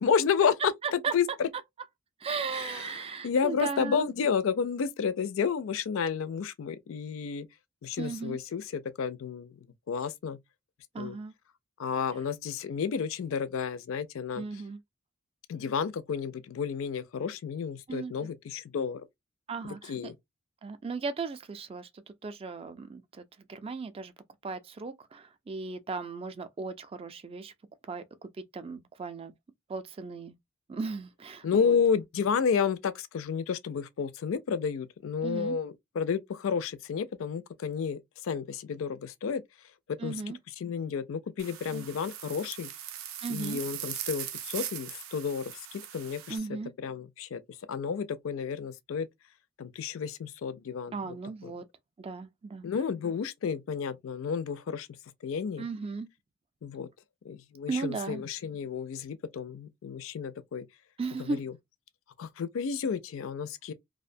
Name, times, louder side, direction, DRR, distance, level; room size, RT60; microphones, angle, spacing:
voice 1, 0.0-1.5 2.5-7.5 7.8-9.6 9.9-10.4 11.0-11.2 11.8-14.4 15.5-19.0 19.8-20.2 31.4-39.4 39.9-40.2 40.6-42.7 43.3-46.4 46.8-47.4 47.7-49.1 49.6-51.0 51.4-51.5 52.6-54.9 55.2-55.7 56.6-56.9 57.2-60.7 61.2-61.5 62.2-63.7, left 6 dB, 70° left, 0.4 m, -31 dB
voice 2, 0.8-1.1 2.2-4.1 8.0-8.4 10.9-11.3 14.4-14.8 17.9-18.1 19.5-20.1 20.6-21.9 22.2-23.2 23.5-24.1 24.4-27.5 27.9-28.0 28.5-29.3 29.7-30.3 30.7-31.8 35.2-35.6 40.0-40.4 41.7-41.9 43.2-43.6 46.3-46.7 50.9-51.6 52.0-52.7 55.6-56.1 57.7-58.2 61.0-61.4, right 4 dB, 30° right, 0.3 m, -36 dB
sound 1, 41.4-46.4, right 10 dB, 85° right, 0.5 m, -40 dB
2.5 x 2.1 x 2.5 m
head